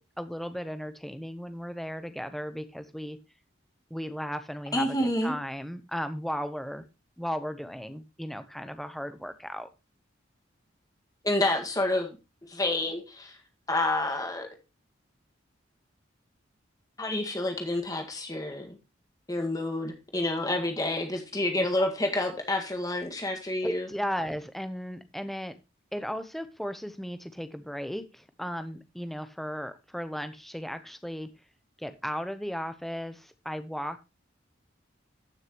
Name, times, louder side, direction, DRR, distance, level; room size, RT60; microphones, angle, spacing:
voice 1, 0.0-3.2 3.9-6.8 7.2-9.7 21.6-21.7 23.6-25.6 25.9-31.3 31.8-34.0, equal, ahead, 10 dB, 0.7 m, -36 dB
voice 2, 4.7-5.4 11.2-12.2 12.4-13.4 13.7-14.5 17.0-18.8 19.3-23.9, left 1 dB, 20° left, 3 dB, 1.8 m, -29 dB
14.5 x 6.4 x 3.0 m, 0.27 s
head